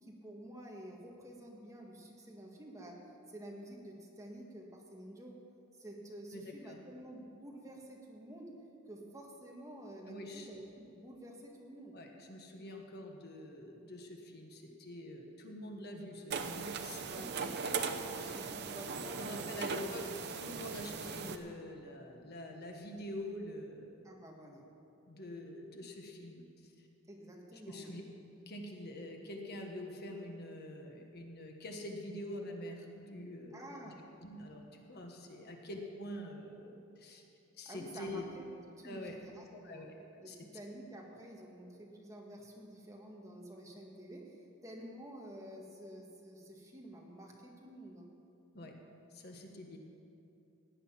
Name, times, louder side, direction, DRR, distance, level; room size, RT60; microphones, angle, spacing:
voice 1, 0.0-3.0 3.3-5.4 5.7-8.5 8.9-12.0 17.0-17.9 18.3-20.1 24.0-24.6 27.1-28.0 33.5-34.0 37.6-39.9 40.2-48.1, right 1 dB, 15° right, -1 dB, 1.8 m, -50 dB
voice 2, 6.3-6.8 10.1-10.5 11.9-18.4 19.1-20.1 20.4-24.2 25.1-26.7 27.7-28.0 28.5-33.9 34.2-37.2 37.6-38.3 38.8-39.1 39.5-39.9 40.3-40.4 48.5-48.7 49.1-49.8, left 1 dB, 50° left, 2 dB, 1.4 m, -46 dB
sound 1, 16.3-21.4, right 5 dB, 55° right, 0.8 m, -39 dB
17.0 x 9.7 x 5.8 m, 2.7 s
head